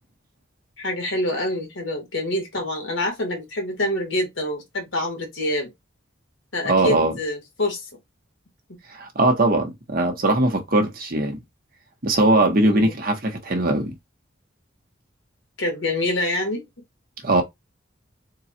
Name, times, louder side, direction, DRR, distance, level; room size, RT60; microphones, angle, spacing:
voice 1, 0.8-5.7 6.5-7.9 12.6-12.9 15.6-16.6, left 1 dB, 80° left, 1.8 m, -26 dB
voice 2, 6.6-7.1 8.9-11.4 12.0-14.0 17.2-17.4, right 2 dB, 50° right, 1.1 m, -20 dB
3.8 x 2.4 x 4.3 m
head